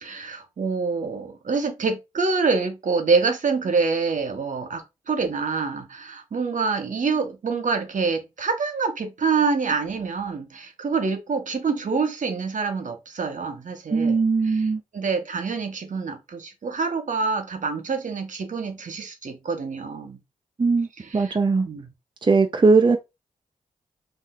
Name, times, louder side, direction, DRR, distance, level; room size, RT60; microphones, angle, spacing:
voice 1, 0.0-20.2 21.0-21.4 21.6-21.9, right 4 dB, 60° right, 0.9 m, -26 dB
voice 2, 13.9-14.8 20.6-20.9 21.1-21.7 22.2-23.0, right 4 dB, 30° right, 0.5 m, -19 dB
2.7 x 2.4 x 3.5 m
supercardioid pair, 40°, 15 cm